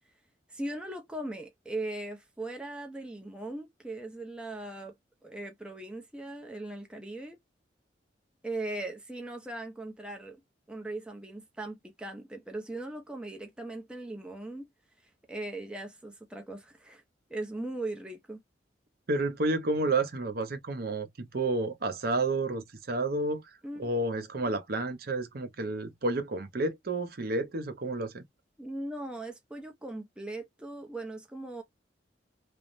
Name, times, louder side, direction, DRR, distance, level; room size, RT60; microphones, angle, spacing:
voice 1, 0.5-4.9 5.2-7.4 8.4-10.4 10.7-14.7 15.3-17.0 17.3-18.4 23.6-23.9 28.6-31.6, right 2 dB, 5° right, 0.5 m, -39 dB
voice 2, 19.1-23.4 23.8-28.2, right 2 dB, 55° right, 0.7 m, -30 dB
3.3 x 2.0 x 2.5 m
head